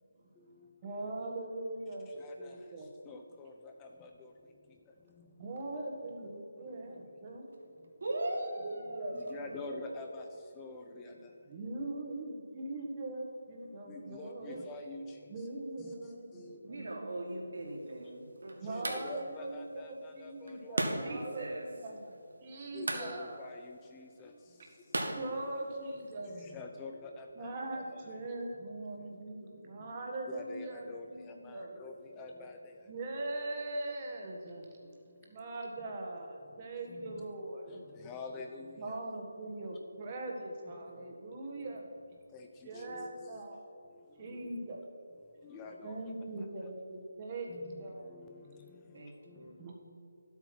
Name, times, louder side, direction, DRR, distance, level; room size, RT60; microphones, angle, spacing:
voice 1, 0.8-2.1 2.4-2.9 5.4-7.5 8.5-9.8 11.5-14.6 15.3-17.1 18.6-22.1 22.4-23.4 25.2-26.4 27.4-31.8 32.9-34.7 35.2-37.8 38.8-41.8 42.6-43.6 44.2-44.8 45.8-48.1 49.6-49.7, right 2 dB, 25° right, -1 dB, 1.6 m, -41 dB
voice 2, 2.2-2.6 3.1-4.3 5.2-5.3 9.1-10.2 10.6-11.3 13.9-15.2 15.8-15.9 16.3-16.6 18.7-21.1 22.7-24.3 26.3-27.5 27.9-28.0 30.3-32.6 36.9-37.3 37.7-39.0 42.3-42.5 42.7-43.3 44.3-44.4 45.4-46.0 46.4-46.5 47.5-49.4, left 3 dB, 15° left, 3 dB, 0.6 m, -47 dB
voice 3, 8.0-10.8 11.0-11.3 16.7-19.0 21.0-21.6 48.9-49.6, right 1 dB, 55° right, -1 dB, 2.8 m, -41 dB
sound 1, 17.6-26.1, right 1 dB, 70° right, 1.9 m, -41 dB
12.0 x 8.4 x 6.1 m, 2.6 s
figure-of-eight pair, 155°, 0 cm